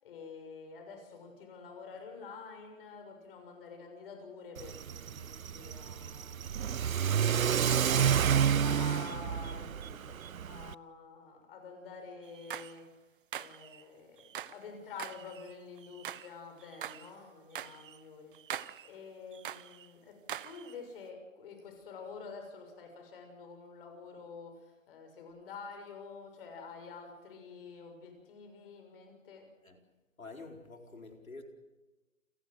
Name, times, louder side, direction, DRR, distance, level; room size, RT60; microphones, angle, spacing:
voice 1, 0.0-6.7 7.0-7.9 8.4-10.2 10.4-12.8 13.3-29.5, left 5 dB, 45° left, 5 dB, 6.7 m, -48 dB
Car / Accelerating revving vroom, 4.6-10.7, right 8 dB, 85° right, 0.7 m, -30 dB
sound 1, 12.2-12.8 13.3-13.8 14.2-14.6 15.0-16.3 16.6-17.1 17.5-18.0 18.3-18.9 19.3-19.9 20.3-20.7, right 10 dB, 40° right, 0.8 m, -43 dB
voice 2, 30.2-31.4, left 3 dB, 85° left, 4 dB, 4.4 m, -48 dB
29.0 x 16.5 x 7.9 m, 1.1 s
hypercardioid pair, 145°, 40 cm